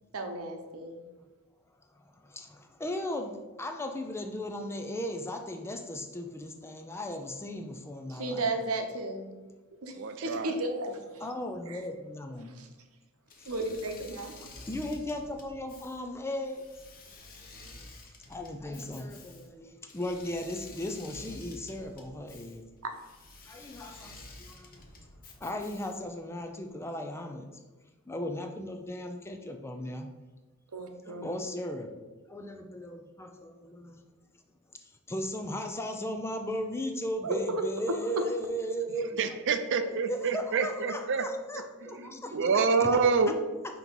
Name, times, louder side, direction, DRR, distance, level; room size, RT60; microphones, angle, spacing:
voice 1, 0.1-1.0 8.1-9.3 9.8-9.9 10.2-11.3 11.7-11.8 12.6-12.7 13.5-14.5 30.7-31.2 37.2-37.6 42.9-43.0, right 2 dB, 85° right, 5 dB, 0.8 m, -34 dB
voice 2, 2.2-8.5 11.2-12.6 14.7-16.6 17.6-17.9 18.3-22.6 23.5-24.8 25.4-27.5 28.1-30.1 31.0-31.9 32.3-34.0 35.1-39.2 40.1-41.6 41.9-42.4, left 1 dB, 10° left, 4 dB, 0.4 m, -36 dB
voice 3, 9.9-10.6 39.0-41.3 41.8-43.4, right 5 dB, 60° right, 9 dB, 0.5 m, -27 dB
Engine / Mechanisms, 13.3-26.2, left 2 dB, 40° left, 0.9 m, -50 dB
5.9 x 3.0 x 5.3 m, 1.2 s
head